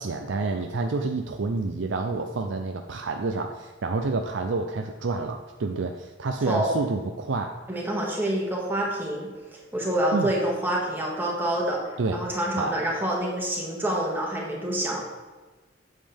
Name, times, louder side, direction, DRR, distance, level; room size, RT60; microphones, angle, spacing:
voice 1, 0.0-7.6 10.1-10.3 12.0-12.2 12.6-12.8, right 3 dB, 90° right, 5 dB, 0.5 m, -28 dB
voice 2, 7.7-9.3 9.7-11.8 12.1-15.0, right 1 dB, 10° right, -3 dB, 1.9 m, -27 dB
8.7 x 7.5 x 3.5 m, 1.3 s
head